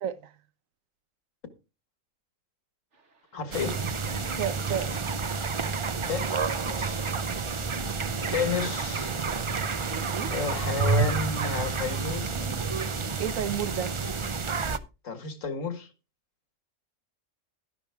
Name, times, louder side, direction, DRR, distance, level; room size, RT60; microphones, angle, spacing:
voice 1, 0.0-0.3 4.4-4.9 9.8-10.3 13.2-14.0, right 9 dB, 75° right, 1.3 m, -31 dB
sound 1, 2.9-14.3, right 2 dB, 60° right, 2.1 m, -48 dB
voice 2, 3.3-3.8 6.1-6.3 6.6-7.0 8.3-9.1 10.3-12.4 15.0-15.9, left 5 dB, 70° left, 2.0 m, -31 dB
sound 2, 3.5-14.8, right 4 dB, 35° right, 0.5 m, -29 dB
12.0 x 11.0 x 3.5 m
omnidirectional pair, 1.4 m